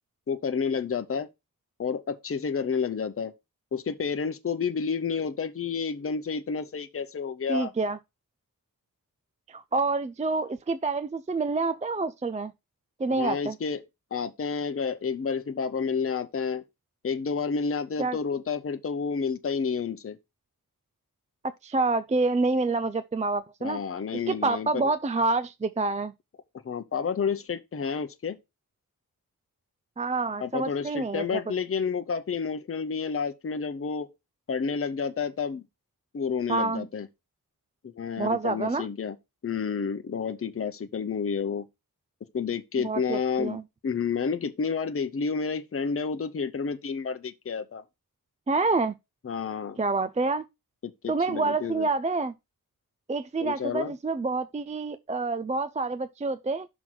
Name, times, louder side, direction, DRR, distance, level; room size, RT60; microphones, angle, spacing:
voice 1, 0.3-1.3 1.8-3.3 3.7-7.7 13.2-13.8 14.1-16.6 17.0-20.2 23.6-24.9 26.6-28.4 30.4-34.1 34.5-35.6 36.1-37.1 37.8-39.2 39.4-41.6 42.3-43.6 43.8-47.8 49.2-49.8 50.8-51.9 53.4-53.9, left 6 dB, 40° left, 0.7 m, -30 dB
voice 2, 7.5-8.0 9.5-12.5 13.0-13.6 18.0-18.2 21.6-23.8 24.3-26.1 30.0-31.4 36.5-36.9 38.2-38.9 42.8-43.6 48.5-48.9 49.8-50.4 51.1-52.3 53.1-56.7, right 3 dB, 20° right, 0.4 m, -27 dB
6.1 x 3.9 x 6.1 m
wide cardioid pair, 115°, 35 cm